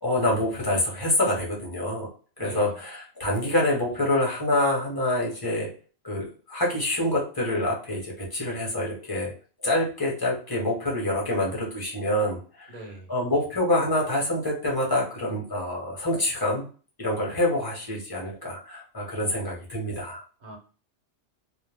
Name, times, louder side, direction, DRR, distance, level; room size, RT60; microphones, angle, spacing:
voice 1, 0.0-2.1 2.4-5.7 6.0-9.3 9.6-12.7 13.1-16.6 17.0-20.2, left 1 dB, 20° left, -3 dB, 0.9 m, -26 dB
voice 2, 2.4-2.8 12.7-13.1 20.4-20.6, right 2 dB, 40° right, 0 dB, 0.8 m, -41 dB
2.4 x 2.0 x 3.3 m, 0.38 s
omnidirectional pair, 1.3 m